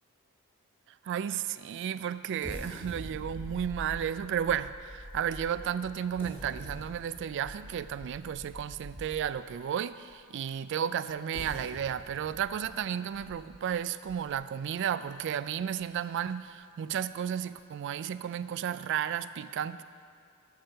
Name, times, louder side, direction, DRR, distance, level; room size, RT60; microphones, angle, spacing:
voice 1, 1.0-19.8, right 9 dB, 60° right, 14 dB, 0.3 m, -33 dB
sound 1, 2.4-9.5 10.1-10.2 11.1-14.6 15.1-15.2 15.6-15.8, equal, 10° left, 1.6 m, -45 dB
13.0 x 6.7 x 4.5 m, 2.2 s
head